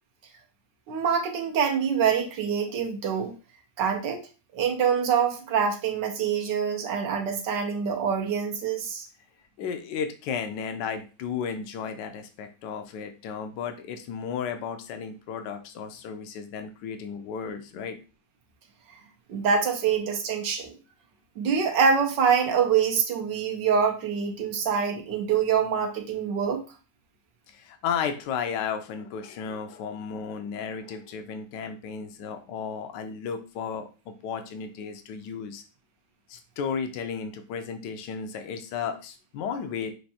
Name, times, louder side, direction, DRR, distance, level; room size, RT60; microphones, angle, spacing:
voice 1, 0.9-3.3 3.8-4.2 4.5-9.1 19.3-20.7 21.4-26.6, right 7 dB, 85° right, 3 dB, 1.5 m, -25 dB
voice 2, 9.6-18.0 27.5-35.6 36.3-39.9, left 6 dB, 85° left, 7 dB, 1.3 m, -34 dB
6.5 x 2.6 x 2.8 m, 0.33 s
omnidirectional pair, 1.8 m